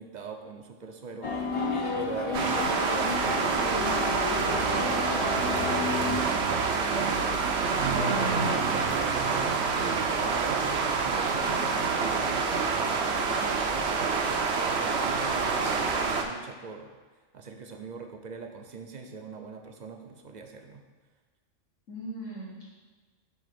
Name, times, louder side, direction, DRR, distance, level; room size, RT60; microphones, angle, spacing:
voice 1, 0.0-1.3 1.9-14.4 14.7-16.9 17.3-20.8, right 4 dB, 50° right, 4 dB, 0.6 m, -41 dB
sound 1, 1.2-6.2, left 3 dB, 30° left, 0.7 m, -31 dB
sound 2, 2.3-16.2, right 4 dB, 65° right, 0.9 m, -27 dB
voice 2, 7.9-8.7 21.9-22.6, right 1 dB, 85° left, -7 dB, 2.1 m, -35 dB
7.9 x 2.9 x 5.9 m, 1.4 s
omnidirectional pair, 1.3 m